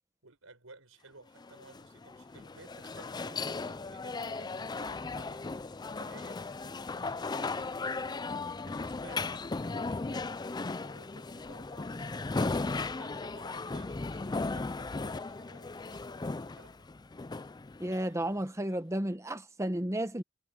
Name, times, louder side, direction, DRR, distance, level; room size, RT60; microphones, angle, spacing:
voice 1, 0.2-5.5 6.0-16.9, right 3 dB, 90° right, 5.5 m, -56 dB
sound 1, 1.4-18.4, left 3 dB, 20° left, 0.4 m, -37 dB
voice 2, 17.8-20.2, right 1 dB, 15° right, 1.1 m, -32 dB
head